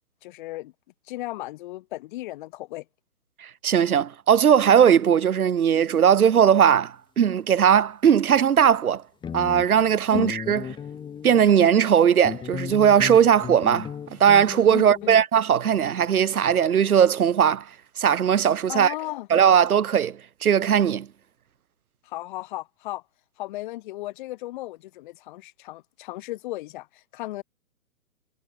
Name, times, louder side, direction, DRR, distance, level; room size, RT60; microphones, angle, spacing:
voice 1, 0.2-0.7 1.1-2.8 10.1-10.3 14.7-15.2 18.7-19.3 22.0-23.0 23.4-27.4, left 17 dB, 35° left, 1.7 m, -35 dB
voice 2, 3.6-9.0 9.3-10.6 11.2-13.9 14.2-17.7 18.0-18.9 19.3-21.1, right 8 dB, 80° right, 1.5 m, -19 dB
sound 1, 5.7-6.0 9.0-9.1 9.2-11.6 12.2-15.2, left 8 dB, 10° left, 2.7 m, -36 dB
hypercardioid pair, 150°, 43 cm